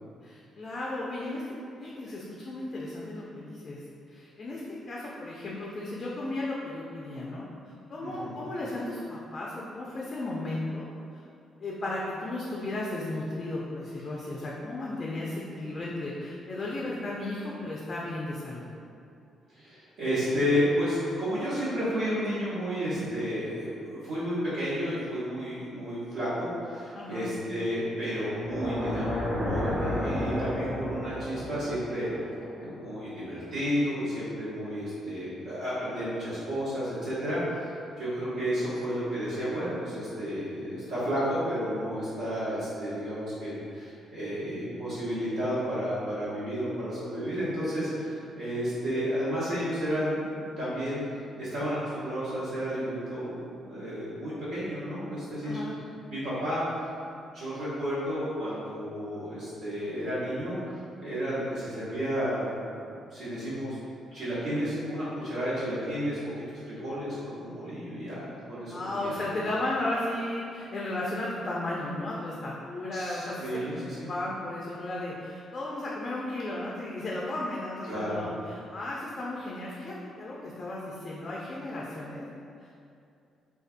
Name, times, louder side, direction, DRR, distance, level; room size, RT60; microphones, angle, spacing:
voice 1, 0.2-1.4 1.7-3.8 4.1-4.6 4.9-7.5 7.9-10.9 11.6-18.6 26.9-27.3 55.4-55.8 68.7-73.6 73.9-82.3 82.6-82.7, left 2 dB, 40° left, -5 dB, 0.3 m, -34 dB
voice 2, 8.0-8.4 19.5-32.3 32.6-55.6 56.1-56.9 57.3-62.5 62.9-63.8 64.1-66.2 66.7-69.3 72.9-74.1 77.9-78.3, equal, 85° right, -17 dB, 0.9 m, -32 dB
sound 1, 28.3-33.4, left 1 dB, 35° right, 0.7 m, -32 dB
2.5 x 2.3 x 2.4 m, 2.5 s
cardioid pair, 90°, 0 cm